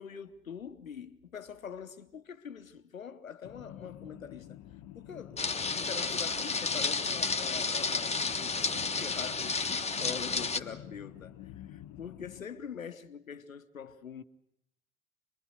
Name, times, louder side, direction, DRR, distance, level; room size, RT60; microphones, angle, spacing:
voice 1, 0.0-4.6 5.0-14.2, left 7 dB, 85° left, 0.9 m, -44 dB
sound 1, 3.4-12.4, left 11 dB, 55° left, 1.0 m, -49 dB
sound 2, 5.4-10.6, left 4 dB, 15° left, 1.4 m, -31 dB
26.0 x 21.0 x 8.0 m
figure-of-eight pair, 50°, 39 cm